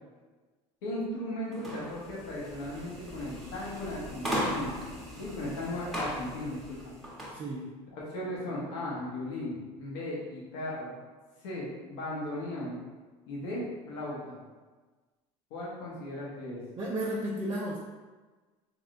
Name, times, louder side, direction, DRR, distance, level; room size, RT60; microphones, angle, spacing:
voice 1, 0.8-4.8 5.2-6.9 8.1-10.9 11.4-12.8 13.3-14.4 15.5-16.6, left 1 dB, 85° left, -5 dB, 1.1 m, -36 dB
sound 1, 1.5-7.4, equal, ahead, 1.0 m, -37 dB
voice 2, 7.3-7.7 16.8-17.8, right 1 dB, 35° right, -3 dB, 0.6 m, -33 dB
3.5 x 3.1 x 2.5 m, 1.3 s
supercardioid pair, 95°, 14 cm